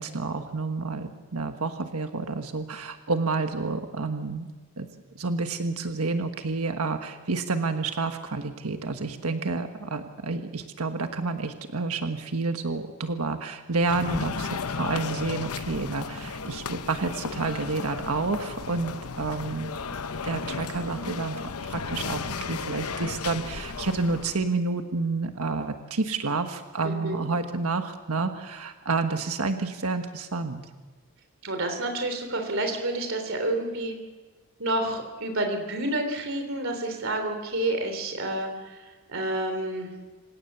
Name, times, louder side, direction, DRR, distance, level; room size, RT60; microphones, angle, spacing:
voice 1, 0.0-4.5 4.8-4.9 5.1-19.7 20.0-30.7, right 3 dB, 85° right, 6 dB, 1.4 m, -29 dB
sound 1, 13.8-24.5, left 5 dB, 85° left, 0.9 m, -34 dB
voice 2, 26.8-27.2 31.4-33.9 34.6-38.8 39.1-39.9, right 1 dB, 60° right, 5 dB, 3.5 m, -29 dB
27.0 x 17.0 x 6.9 m, 1.3 s
head